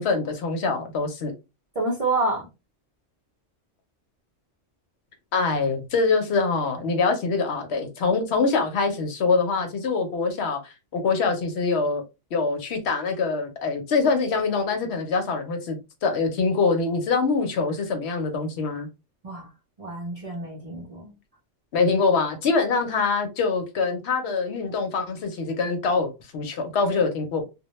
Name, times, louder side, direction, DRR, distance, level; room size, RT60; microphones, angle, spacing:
voice 1, 0.0-1.3 5.3-12.0 12.3-18.9 21.7-27.5, left 4 dB, 65° left, 0.8 m, -24 dB
voice 2, 1.8-2.5 19.2-19.5 19.8-21.1, right 2 dB, 40° right, 0.6 m, -28 dB
2.2 x 2.1 x 2.9 m
omnidirectional pair, 1.3 m